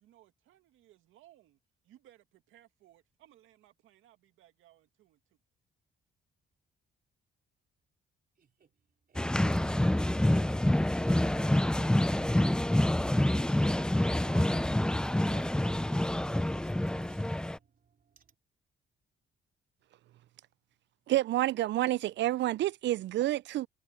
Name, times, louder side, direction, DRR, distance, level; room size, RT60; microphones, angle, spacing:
voice 1, 0.0-1.6 1.9-2.2 2.5-5.2, right 13 dB, 90° right, 2.1 m, -61 dB
voice 2, 8.4-8.7 9.1-18.3, right 7 dB, 45° right, 3.6 m, -58 dB
sound 1, 9.2-17.6, left 1 dB, 5° left, 0.5 m, -27 dB
voice 3, 21.1-23.7, right 14 dB, 65° right, 0.4 m, -29 dB
cardioid pair, 90°, 20 cm